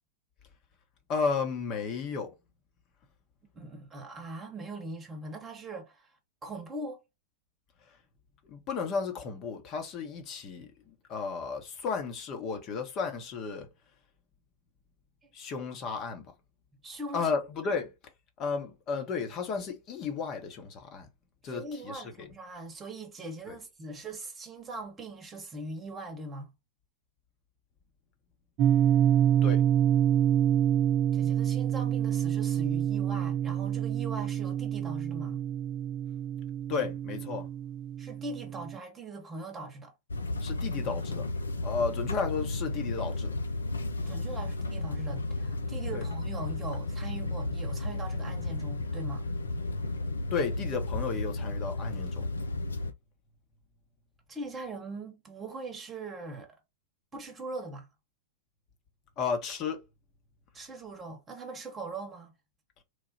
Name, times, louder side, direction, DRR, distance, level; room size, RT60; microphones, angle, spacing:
voice 1, 1.1-2.3 8.5-13.7 15.3-16.3 17.1-17.9 18.4-21.1 21.4-22.3 23.5-23.6 29.4-29.6 36.7-37.5 40.4-41.3 41.6-43.3 45.9-46.0 50.3-52.3 59.2-59.8, left 5 dB, 35° left, 1.0 m, -33 dB
voice 2, 3.5-6.1 6.4-7.0 15.2-15.3 16.8-17.3 17.6-17.8 21.4-26.5 31.1-35.4 38.0-39.9 44.0-49.2 54.3-56.5 57.1-57.9 60.5-62.3, right 2 dB, 20° right, 1.1 m, -41 dB
sound 1, 28.6-38.8, right 10 dB, 40° right, 0.4 m, -27 dB
sound 2, 40.1-52.9, left 2 dB, 80° left, 0.4 m, -33 dB
3.2 x 2.4 x 4.1 m
figure-of-eight pair, 95°, 0 cm